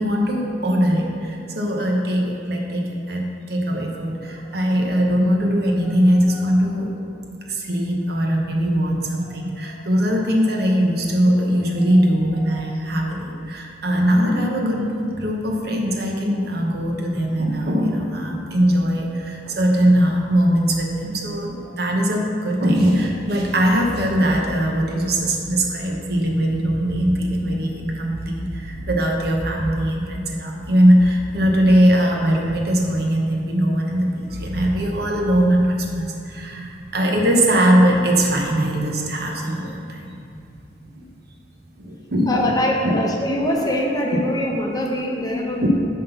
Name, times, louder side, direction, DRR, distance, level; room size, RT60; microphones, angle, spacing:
voice 1, 0.0-3.2 3.5-7.2 7.5-40.2 41.0-41.1 41.8-42.5 42.8-42.9 45.6-45.7, equal, 60° right, 0 dB, 1.0 m, -20 dB
voice 2, 42.3-45.7, left 1 dB, 20° left, -1 dB, 0.8 m, -23 dB
9.3 x 3.7 x 5.7 m, 2.5 s
head